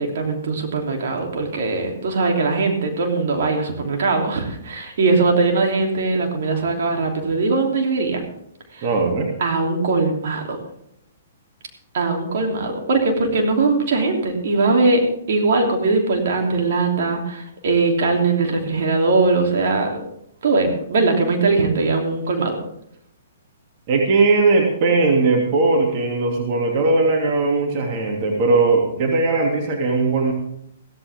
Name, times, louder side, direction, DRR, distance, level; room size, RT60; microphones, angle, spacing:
voice 1, 0.0-8.2 8.7-8.8 9.4-10.6 11.9-20.0 20.4-22.6, right 3 dB, 65° right, 2 dB, 3.2 m, -20 dB
voice 2, 8.8-9.3 23.9-30.3, right 3 dB, 45° right, 0 dB, 2.7 m, -19 dB
15.5 x 14.0 x 3.6 m, 0.74 s
hypercardioid pair, 130°, 0 cm